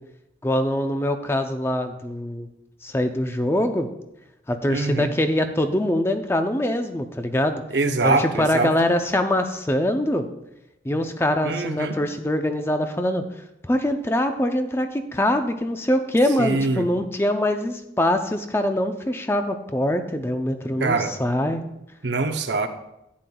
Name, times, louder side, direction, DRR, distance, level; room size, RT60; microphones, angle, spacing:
voice 1, 0.4-2.5 2.8-3.9 4.5-7.6 8.0-10.3 10.8-13.2 13.6-21.6, left 1 dB, 15° left, 7 dB, 0.5 m, -23 dB
voice 2, 4.7-5.1 7.7-8.7 11.4-12.0 16.4-16.9 20.8-21.1 22.0-22.7, right 3 dB, 85° right, 6 dB, 0.7 m, -23 dB
11.0 x 9.1 x 2.3 m, 0.87 s
head